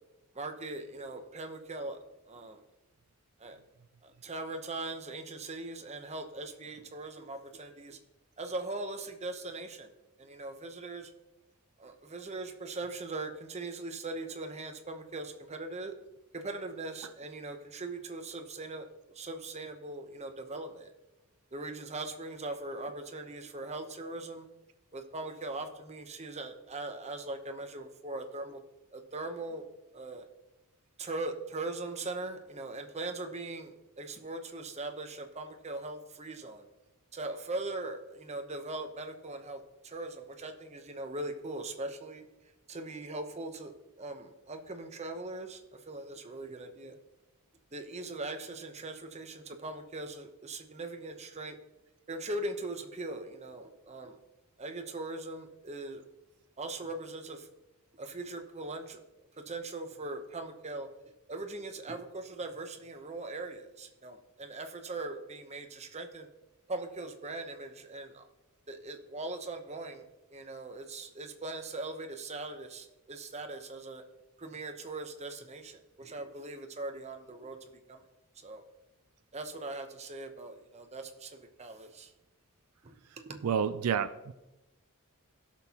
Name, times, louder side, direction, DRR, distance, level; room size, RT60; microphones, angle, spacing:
voice 1, 0.3-2.0 2.3-2.6 3.4-3.6 4.0-8.0 8.4-9.9 10.2-11.1 11.8-15.9 16.3-20.9 21.5-24.5 24.9-28.6 28.9-29.6 29.9-30.2 31.0-36.6 37.1-42.3 42.7-47.0 47.7-51.6 52.1-54.2 54.6-56.0 56.6-57.5 58.0-59.0 59.4-60.9 61.3-66.3 66.7-68.2 68.7-70.0 70.3-74.0 74.4-77.6 77.9-78.0 78.4-78.6 79.3-82.1 82.8-83.0 83.3-83.4, right 2 dB, 30° right, 5 dB, 0.8 m, -40 dB
voice 2, 83.4-84.3, right 7 dB, 75° right, 12 dB, 0.4 m, -29 dB
16.5 x 6.2 x 2.9 m, 0.99 s
head